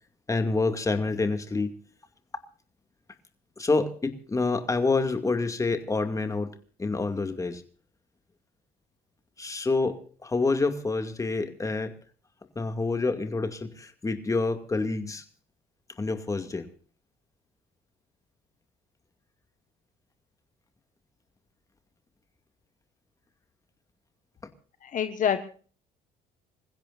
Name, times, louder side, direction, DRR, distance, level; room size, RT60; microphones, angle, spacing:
voice 1, 0.3-1.7 3.6-6.5 6.8-7.6 9.4-11.9 12.6-15.2 16.0-16.7, left 3 dB, 20° left, 2.4 m, -27 dB
voice 2, 24.8-25.4, left 8 dB, 50° left, 1.4 m, -26 dB
26.5 x 16.0 x 2.6 m
cardioid pair, 110°, 17 cm